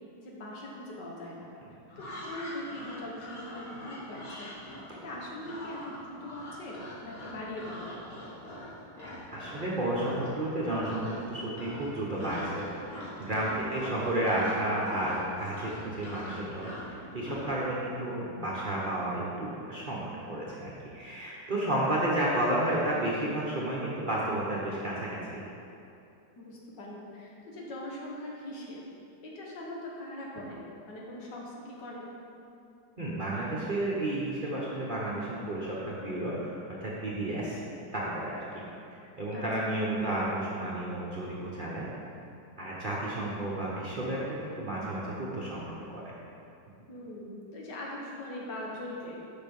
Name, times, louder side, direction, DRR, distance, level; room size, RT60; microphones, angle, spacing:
voice 1, 0.2-1.5 2.0-4.5 5.0-7.9 13.5-13.9 26.4-28.8 29.2-30.6 30.9-32.1 39.3-39.4 46.9-49.2, left 1 dB, 80° left, -3 dB, 1.9 m, -41 dB
sound 1, 1.9-9.7 10.0-10.4 10.7-11.3 11.5-17.5, left 1 dB, 55° left, 2.1 m, -43 dB
voice 2, 9.0-20.0 20.3-25.4 33.0-36.5 36.8-37.6 37.9-38.6 38.9-41.9 42.6-46.1, right 1 dB, 35° right, -6 dB, 0.9 m, -32 dB
6.6 x 5.9 x 5.3 m, 2.6 s
omnidirectional pair, 1.9 m